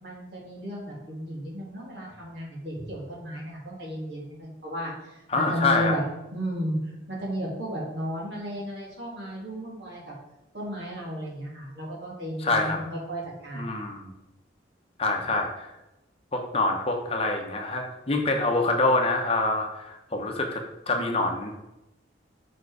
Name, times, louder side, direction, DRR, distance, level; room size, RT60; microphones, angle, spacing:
voice 1, 0.0-6.0 6.3-6.8 7.1-10.0 10.5-13.8, equal, 65° right, -4 dB, 2.3 m, -34 dB
voice 2, 5.3-6.0 12.4-12.8 13.5-14.1 15.0-15.7 16.3-21.6, left 2 dB, 30° left, 2 dB, 0.8 m, -26 dB
5.8 x 4.6 x 4.7 m, 0.93 s
head